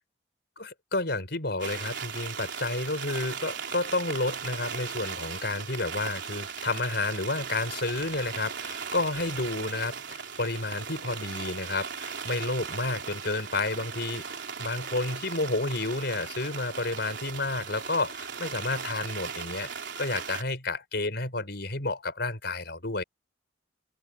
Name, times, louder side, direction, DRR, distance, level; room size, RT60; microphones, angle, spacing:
voice 1, 0.6-14.3 14.6-19.7 20.0-23.0, left 2 dB, 55° left, 5.3 m, -31 dB
sound 1, 1.6-20.4, right 6 dB, 60° right, 4.1 m, -38 dB
head